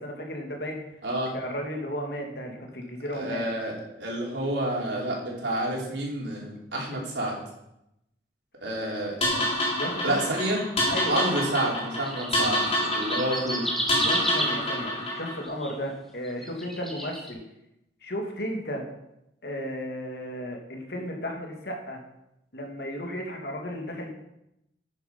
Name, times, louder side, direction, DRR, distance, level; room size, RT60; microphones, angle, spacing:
voice 1, 0.0-0.8 1.3-3.4 6.9-7.0 9.8-10.3 10.9-11.2 14.0-17.4 18.0-18.9 19.4-22.0 22.5-24.1, equal, 65° left, 1 dB, 2.4 m, -34 dB
voice 2, 1.0-1.3 3.1-7.4 8.6-9.5 10.0-10.6 11.1-13.7, right 1 dB, 90° right, -2 dB, 4.1 m, -29 dB
sound 1, 9.2-15.4, left 1 dB, 35° left, 3.6 m, -28 dB
sound 2, 12.0-15.7 16.2-17.3, equal, ahead, 1.5 m, -31 dB
10.0 x 9.5 x 5.4 m, 0.85 s
head